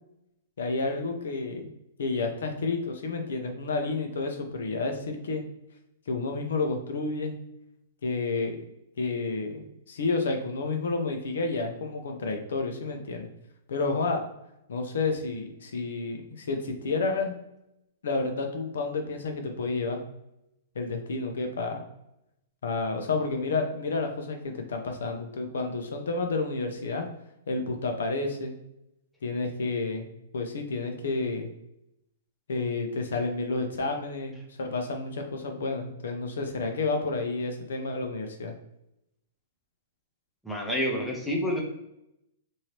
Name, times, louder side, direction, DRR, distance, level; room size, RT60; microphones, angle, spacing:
voice 1, 0.6-1.7 2.0-5.4 6.1-7.3 8.0-8.6 9.0-13.3 13.7-14.2 14.7-17.4 18.0-20.0 20.7-21.8 22.6-27.1 27.5-28.6 29.2-30.1 30.3-31.5 32.5-38.5, left 3 dB, 85° left, 4 dB, 0.7 m, -30 dB
voice 2, 40.4-41.6, equal, ahead, -2 dB, 0.5 m, -28 dB
3.1 x 2.7 x 2.9 m, 0.83 s
hypercardioid pair, 160°, 0 cm